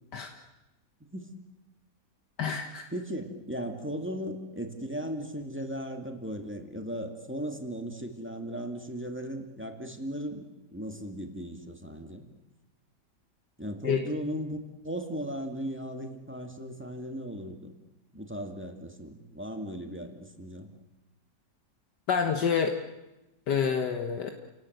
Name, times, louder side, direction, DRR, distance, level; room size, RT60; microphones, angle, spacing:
voice 1, 2.4-2.8 13.8-14.0 22.1-22.8 23.5-24.3, left 6 dB, 75° left, 5 dB, 1.8 m, -27 dB
voice 2, 2.9-12.2 13.6-17.7 18.1-20.7, equal, 5° right, 4 dB, 2.0 m, -37 dB
30.0 x 18.0 x 8.0 m, 1.0 s
omnidirectional pair, 1.8 m